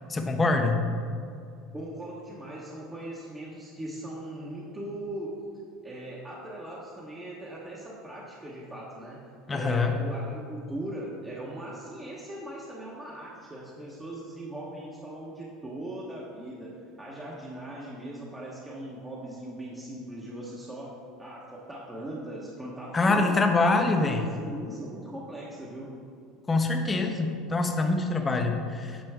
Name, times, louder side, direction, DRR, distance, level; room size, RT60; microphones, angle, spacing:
voice 1, 0.1-0.8 9.5-9.9 22.9-24.2 26.5-29.0, left 3 dB, 20° left, 4 dB, 0.8 m, -25 dB
voice 2, 1.7-5.4 5.8-16.7 17.0-20.9 21.2-23.4 23.8-25.9, right 1 dB, 15° right, -5 dB, 1.1 m, -39 dB
8.8 x 5.1 x 3.6 m, 2.4 s
supercardioid pair, 105°, 0 cm